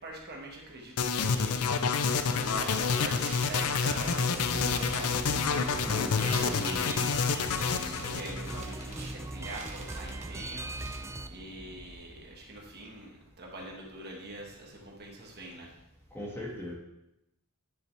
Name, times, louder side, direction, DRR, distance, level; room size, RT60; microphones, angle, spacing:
voice 1, 0.0-11.0 11.3-15.7, right 1 dB, 45° right, -1 dB, 1.6 m, -44 dB
sound 1, 1.0-9.0, left 5 dB, 75° left, 0.5 m, -29 dB
sound 2, 2.4-12.6, right 2 dB, 30° right, 1.3 m, -47 dB
sound 3, 3.9-11.3, right 2 dB, 10° right, 0.3 m, -40 dB
voice 2, 5.8-6.9 16.1-16.7, left 1 dB, 10° left, -4 dB, 1.7 m, -38 dB
9.9 x 6.7 x 3.4 m, 0.88 s
head